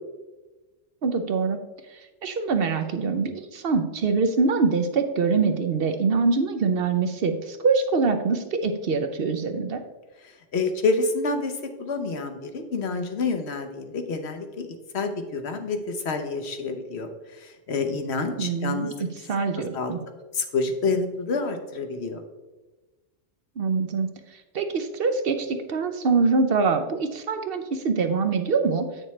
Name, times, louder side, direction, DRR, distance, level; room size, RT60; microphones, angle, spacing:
voice 1, 1.0-1.6 2.2-9.8 18.4-18.9 19.3-20.0 23.6-24.1 24.5-28.9, right 4 dB, 60° right, 8 dB, 0.8 m, -24 dB
voice 2, 10.2-14.7 14.9-17.1 17.4-18.9 19.5-19.9 20.3-22.2, left 3 dB, 65° left, 6 dB, 1.1 m, -28 dB
8.8 x 6.5 x 3.2 m, 1.1 s
omnidirectional pair, 1.2 m